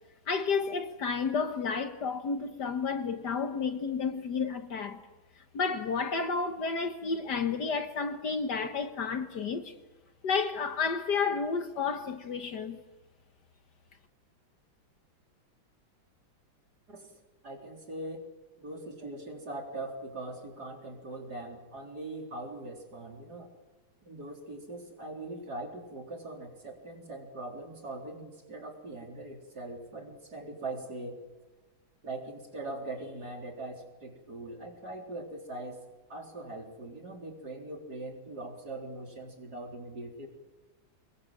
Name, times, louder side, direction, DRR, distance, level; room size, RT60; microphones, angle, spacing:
voice 1, 0.3-5.0 5.5-9.7 10.2-12.8, left 5 dB, 60° left, 1.8 m, -31 dB
voice 2, 17.4-18.3 18.6-23.5 24.0-31.2 32.0-35.8 36.1-40.3, right 2 dB, 50° right, 4.4 m, -41 dB
25.5 x 21.5 x 7.4 m
omnidirectional pair, 2.2 m